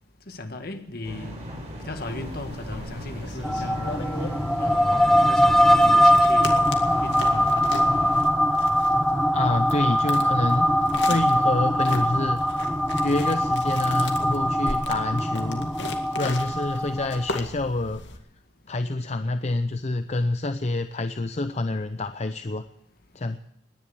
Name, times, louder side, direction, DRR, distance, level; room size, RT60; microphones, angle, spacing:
voice 1, 0.3-1.4 1.8-3.9 4.6-6.6 7.0-7.7, left 2 dB, 55° left, 1.8 m, -36 dB
sound 1, 1.0-8.2, equal, 35° right, 5.5 m, -37 dB
sound 2, 2.0-18.2, left 3 dB, 80° left, 2.2 m, -39 dB
sound 3, 3.4-17.4, equal, 5° left, 0.7 m, -22 dB
voice 2, 9.3-10.7 11.1-12.4 13.0-15.7 16.1-18.0 18.7-22.6 23.1-23.4, left 2 dB, 35° left, 0.6 m, -27 dB
19.0 x 10.5 x 7.0 m
head